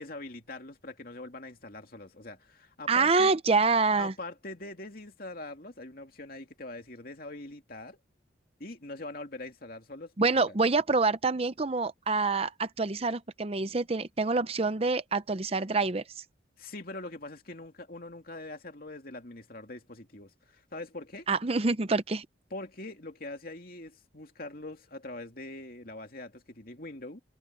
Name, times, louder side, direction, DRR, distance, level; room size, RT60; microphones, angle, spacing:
voice 1, 0.0-3.3 4.0-8.0 8.6-10.5 16.6-21.3 22.5-27.2, left 2 dB, 50° left, 2.7 m, -43 dB
voice 2, 2.9-4.1 10.2-16.0 21.3-22.3, right 4 dB, 30° right, 0.6 m, -26 dB
head